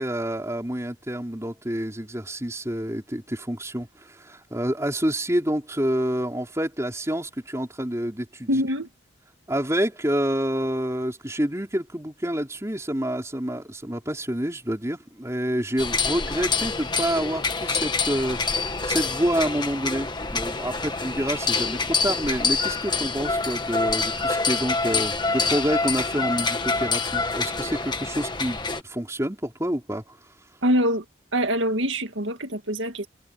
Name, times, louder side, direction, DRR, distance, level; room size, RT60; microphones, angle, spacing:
voice 1, 0.0-8.5 9.5-30.2, equal, 15° right, 4.2 m, -28 dB
voice 2, 8.5-8.9 30.6-31.0 31.3-33.1, equal, 90° right, 2.1 m, -24 dB
sound 1, 15.8-28.8, left 4 dB, 25° left, 1.5 m, -26 dB
head